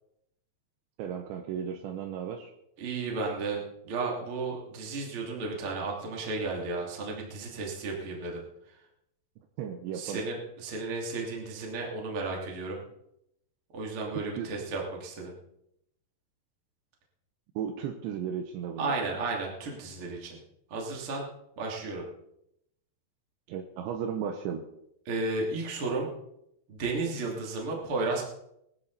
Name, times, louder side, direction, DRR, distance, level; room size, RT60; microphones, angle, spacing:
voice 1, 1.0-2.5 9.6-10.2 14.4-14.5 17.6-18.9 23.5-24.6, right 8 dB, 80° right, 5 dB, 3.2 m, -35 dB
voice 2, 2.8-8.4 9.9-12.8 13.7-15.3 18.8-20.4 20.7-21.2 21.6-22.0 25.1-26.1 26.7-28.2, right 3 dB, 35° right, -1 dB, 3.0 m, -33 dB
19.0 x 13.0 x 4.1 m, 0.78 s
omnidirectional pair, 5.2 m